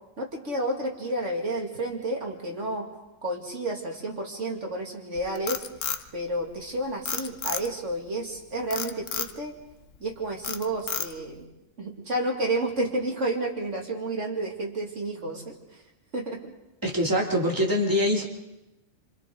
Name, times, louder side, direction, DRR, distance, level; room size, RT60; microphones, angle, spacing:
voice 1, 0.2-2.9 3.2-5.6 6.1-9.6 10.0-11.5 11.8-15.8 16.1-16.5, right 1 dB, 65° right, 1 dB, 2.7 m, -31 dB
Frog, 5.2-6.7 7.1-7.9 8.7-9.4 9.8-10.1 10.4-11.4, left 7 dB, 70° left, 1.3 m, -32 dB
voice 2, 16.8-18.2, equal, 15° right, -1 dB, 2.6 m, -24 dB
28.5 x 26.5 x 3.8 m, 0.95 s
omnidirectional pair, 1.4 m